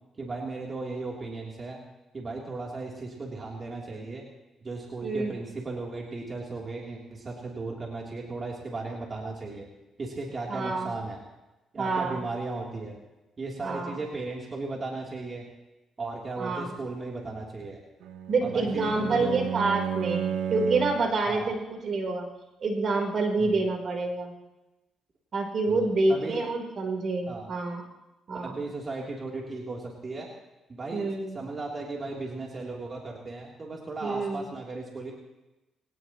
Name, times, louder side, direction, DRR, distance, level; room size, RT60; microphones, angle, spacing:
voice 1, 0.2-1.8 2.1-4.2 4.6-9.7 10.0-11.2 11.7-13.0 13.4-15.5 16.0-17.8 18.4-19.5 21.2-21.5 23.4-23.6 25.7-26.4 27.3-27.5 28.4-30.3 30.7-31.1 31.3-35.1, right 3 dB, 35° right, -2 dB, 3.4 m, -36 dB
voice 2, 5.0-5.4 10.5-10.9 11.8-12.2 13.6-14.0 16.4-16.7 18.3-22.3 22.6-24.3 25.3-27.8 28.3-28.5 30.9-31.4 34.0-34.5, right 3 dB, 50° right, 2 dB, 4.0 m, -27 dB
Bowed string instrument, 18.0-21.2, right 8 dB, 90° right, 0.8 m, -32 dB
23.0 x 19.0 x 3.1 m, 1.0 s
cardioid pair, 90°, 0 cm